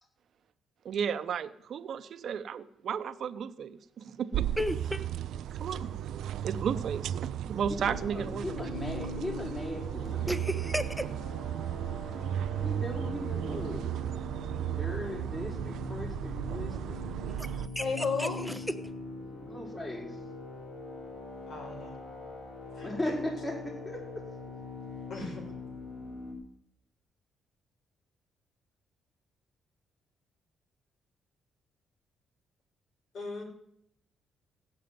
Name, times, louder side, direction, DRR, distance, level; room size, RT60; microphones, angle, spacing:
voice 1, 0.8-4.5 5.5-5.9 6.4-8.6, right 7 dB, 60° right, 11 dB, 0.9 m, -34 dB
sound 1, 4.3-17.7, right 11 dB, 75° right, 0.5 m, -35 dB
voice 2, 4.6-5.0 10.3-11.1 17.4-17.5 17.7-18.6, equal, ahead, 9 dB, 1.0 m, -33 dB
sound 2, 7.8-26.3, left 2 dB, 85° left, 4.1 m, -43 dB
voice 3, 7.8-10.3 12.6-13.8 14.6-17.1 19.2-20.2 22.8-24.2, left 1 dB, 25° left, -1 dB, 6.1 m, -38 dB
voice 4, 17.8-18.4 21.5-22.0 22.8-22.9 25.1-25.5 33.1-33.4, left 4 dB, 60° left, 1 dB, 5.7 m, -34 dB
16.5 x 6.7 x 9.5 m, 0.72 s
cardioid pair, 90°, 0 cm